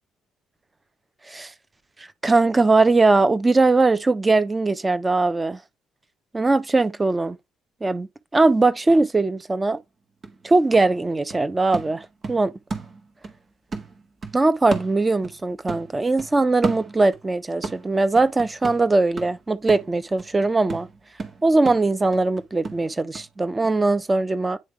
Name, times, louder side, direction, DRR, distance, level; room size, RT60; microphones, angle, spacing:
voice 1, 2.0-5.6 6.3-7.4 7.8-9.8 10.4-12.5 14.3-20.9 21.4-24.6, right 3 dB, 25° right, 1.0 m, -20 dB
sound 1, 9.8-9.9 10.2-13.4 13.7-15.4 15.7-17.3 17.6-23.3 23.6-23.7, right 4 dB, 45° right, 1.9 m, -34 dB
9.7 x 3.4 x 3.3 m
hypercardioid pair, 50°, 0 cm